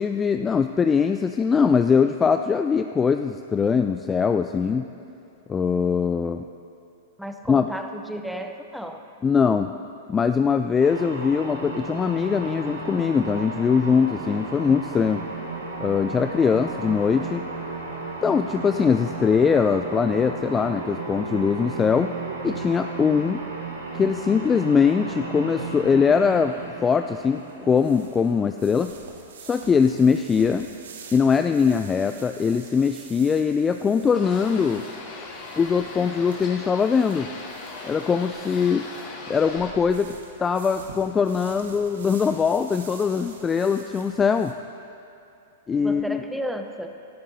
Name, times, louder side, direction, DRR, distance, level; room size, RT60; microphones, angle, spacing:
voice 1, 0.0-4.9 5.5-6.4 7.5-7.7 9.2-9.7 10.1-15.2 15.8-17.4 18.2-22.1 22.4-23.4 23.9-26.5 26.8-28.9 29.4-30.7 31.1-34.8 35.6-37.3 37.9-38.9 39.3-40.1 40.4-44.5 45.7-46.2, left 6 dB, 20° left, 8 dB, 0.3 m, -22 dB
voice 2, 7.2-9.0 45.7-46.9, equal, ahead, 5 dB, 0.8 m, -33 dB
sound 1, 10.8-29.1, right 3 dB, 90° right, 2.2 m, -34 dB
sound 2, 25.9-44.5, right 5 dB, 70° right, 1.3 m, -47 dB
sound 3, 34.1-39.7, left 3 dB, 40° left, 2.9 m, -39 dB
17.0 x 12.5 x 2.8 m, 2.7 s
hypercardioid pair, 110°, 0 cm